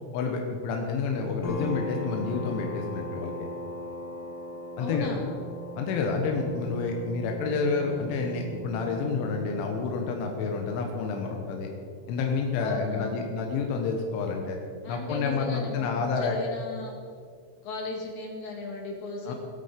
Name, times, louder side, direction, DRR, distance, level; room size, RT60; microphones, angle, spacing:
voice 1, 0.1-3.3 4.8-5.1 5.8-11.7 12.1-14.6 14.9-16.4 19.3-19.4, left 4 dB, 85° left, 2 dB, 3.6 m, -29 dB
sound 1, 1.4-14.7, equal, 65° left, 1.1 m, -40 dB
voice 2, 4.8-5.2 12.6-13.3 14.8-17.0 17.6-19.3, left 2 dB, 50° left, 0 dB, 2.8 m, -36 dB
20.0 x 8.7 x 5.2 m, 2.2 s
omnidirectional pair, 5.4 m